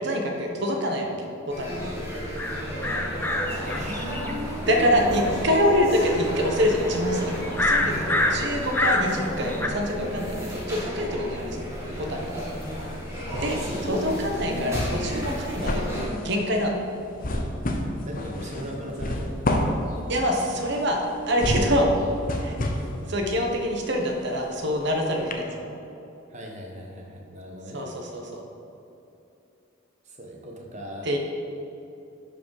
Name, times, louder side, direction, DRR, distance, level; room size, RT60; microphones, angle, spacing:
voice 1, 0.0-1.8 4.7-11.7 12.0-12.4 13.4-13.6 13.9-15.9 16.2-16.8 20.1-21.9 22.4-22.6 23.1-25.7 27.7-28.4 31.0-31.2, equal, 55° right, 2 dB, 1.2 m, -25 dB
sound 1, 1.5-16.1, equal, 15° right, 1.8 m, -33 dB
sound 2, 2.4-9.7, left 1 dB, 10° left, 0.5 m, -28 dB
voice 2, 3.6-5.2 5.5-5.7 8.2-8.7 12.8-12.9 13.6-14.4 18.0-19.3 26.3-27.8 30.0-31.1, equal, 35° right, 0 dB, 1.2 m, -37 dB
sound 3, 9.8-10.8 11.1-24.9 25.3-25.4, left 1 dB, 40° left, 0.8 m, -31 dB
11.0 x 5.1 x 4.9 m, 2.8 s
head